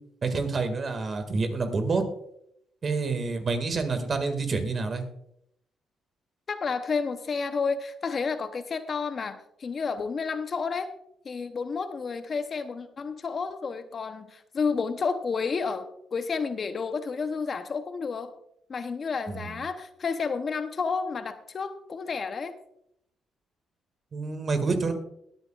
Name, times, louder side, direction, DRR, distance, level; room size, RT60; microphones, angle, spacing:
voice 1, 0.2-2.0 2.8-5.0 19.3-19.6 24.1-24.9, right 4 dB, 40° right, 7 dB, 2.0 m, -28 dB
voice 2, 6.5-10.9 11.2-18.3 18.7-22.5, left 5 dB, 45° left, 10 dB, 0.8 m, -31 dB
21.5 x 8.9 x 2.4 m, 0.74 s
cardioid pair, 90°, 0 cm